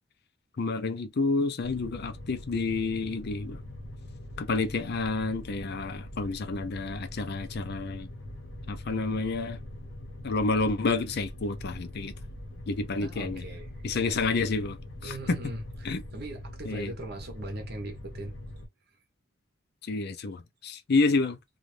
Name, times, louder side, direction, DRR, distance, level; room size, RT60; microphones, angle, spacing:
voice 1, 0.6-3.6 4.4-8.1 8.7-9.6 10.2-12.1 12.7-13.4 13.8-14.8 15.0-15.4 15.8-16.0 16.7-16.9 19.9-21.4, left 3 dB, 55° left, 0.5 m, -29 dB
sound 1, 1.6-18.7, left 1 dB, 80° left, 1.0 m, -42 dB
voice 2, 13.0-13.7 15.0-18.3, right 1 dB, 55° right, 1.0 m, -40 dB
2.6 x 2.5 x 3.1 m
head